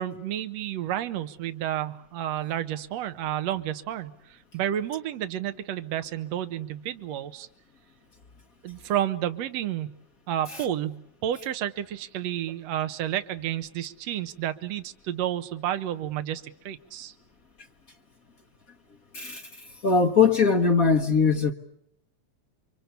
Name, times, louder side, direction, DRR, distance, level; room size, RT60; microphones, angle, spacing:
voice 1, 0.0-7.5 8.6-9.9 10.3-17.1, right 11 dB, 65° right, 2.2 m, -31 dB
voice 2, 19.1-21.5, left 5 dB, 50° left, 1.0 m, -21 dB
30.0 x 24.0 x 6.9 m
omnidirectional pair, 3.3 m